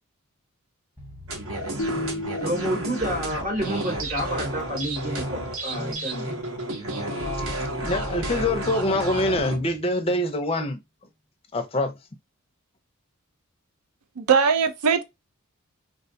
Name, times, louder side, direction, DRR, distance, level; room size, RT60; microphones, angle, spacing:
sound 1, 1.0-10.8, left 1 dB, 10° right, 1.0 m, -41 dB
sound 2, 1.3-9.6, right 1 dB, 65° right, 0.9 m, -31 dB
sound 3, 1.8-3.9, left 2 dB, 75° left, 0.5 m, -34 dB
voice 1, 2.4-6.3, equal, 40° right, 0.9 m, -29 dB
voice 2, 7.8-10.8 11.5-11.9, left 1 dB, 25° left, 0.5 m, -25 dB
voice 3, 14.2-15.0, right 6 dB, 85° right, 0.5 m, -20 dB
3.5 x 2.2 x 2.6 m
head